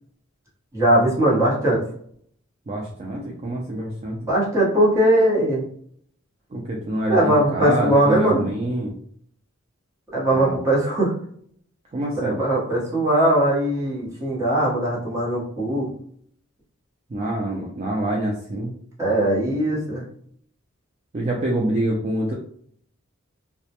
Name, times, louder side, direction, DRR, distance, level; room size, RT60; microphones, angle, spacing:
voice 1, 0.7-1.8 4.3-5.6 7.1-8.5 10.1-11.1 12.2-15.9 19.0-20.0, right 1 dB, 15° right, -6 dB, 0.9 m, -20 dB
voice 2, 2.7-4.2 6.5-8.9 10.3-10.6 11.9-12.4 17.1-18.7 21.1-22.3, right 1 dB, 30° right, -2 dB, 0.4 m, -26 dB
2.2 x 2.0 x 2.8 m, 0.62 s
head